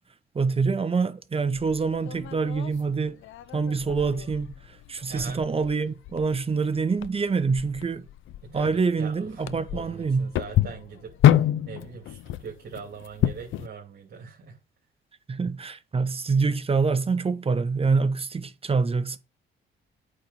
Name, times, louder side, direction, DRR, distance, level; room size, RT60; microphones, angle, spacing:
voice 1, 0.3-3.2 3.5-8.0 8.5-10.3 15.3-19.2, right 4 dB, 30° right, 1.1 m, -26 dB
sound 1, 1.5-13.7, left 12 dB, 75° left, 0.6 m, -28 dB
voice 2, 5.1-5.4 8.4-14.6, right 6 dB, 55° right, 2.7 m, -42 dB
8.7 x 4.5 x 5.4 m
cardioid pair, 90°, 20 cm